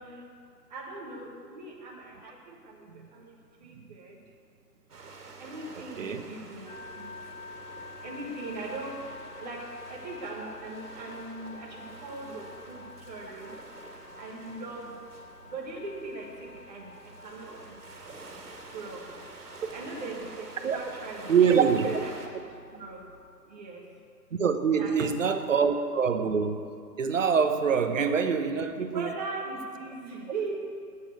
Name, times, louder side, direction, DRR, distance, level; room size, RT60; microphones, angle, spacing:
voice 1, 0.7-2.8 3.1-3.3 3.6-4.1 5.4-7.1 8.0-8.9 9.4-9.6 9.9-13.5 14.2-14.9 15.5-16.8 17.2-17.6 18.7-19.1 19.7-22.1 22.7-23.0 23.5-23.8 24.8-25.1 28.9-30.6, right 3 dB, 25° right, -4 dB, 1.4 m, -40 dB
sound 1, 4.9-22.3, right 3 dB, 65° right, 2.5 m, -47 dB
sound 2, 6.7-23.3, left 4 dB, 55° left, 2.4 m, -49 dB
voice 2, 21.3-22.0 24.4-26.6 27.0-29.1, right 6 dB, 50° right, 7 dB, 1.0 m, -25 dB
8.9 x 8.8 x 9.2 m, 2.5 s
hypercardioid pair, 170°, 50 cm